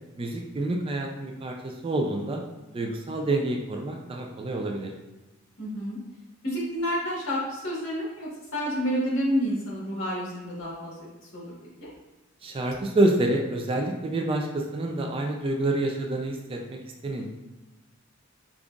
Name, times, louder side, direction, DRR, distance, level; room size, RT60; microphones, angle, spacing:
voice 1, 0.2-2.4 2.7-4.9 12.4-17.3, right 2 dB, 25° right, 2 dB, 0.3 m, -28 dB
voice 2, 5.6-6.0 6.4-10.9 11.3-11.5 11.8-11.9, equal, 65° left, -6 dB, 1.5 m, -29 dB
5.1 x 2.3 x 2.4 m, 1.1 s
head